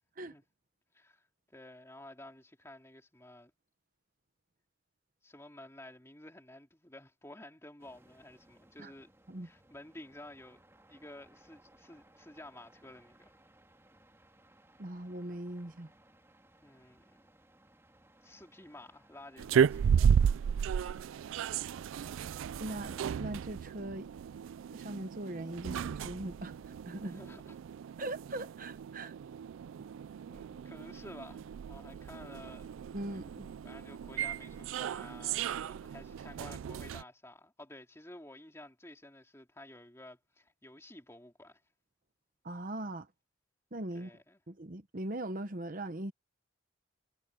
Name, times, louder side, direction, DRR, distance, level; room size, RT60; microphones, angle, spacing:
voice 1, 0.9-3.5 5.2-9.1 9.4-10.6 10.9-13.3 16.6-17.3 18.2-20.1 27.0-27.6 30.3-32.7 33.1-33.2 33.6-41.6 43.9-44.4, left 1 dB, 15° left, 2.8 m, -52 dB
sound 1, 7.8-23.2, right 1 dB, 15° right, 2.4 m, -63 dB
voice 2, 14.8-15.9 22.6-24.1 24.7-27.2 28.0-29.1 32.9-33.5 42.4-43.1 43.7-44.1 44.5-46.1, right 1 dB, 40° right, 1.0 m, -40 dB
sound 2, 19.4-37.0, right 7 dB, 80° right, 0.3 m, -34 dB
head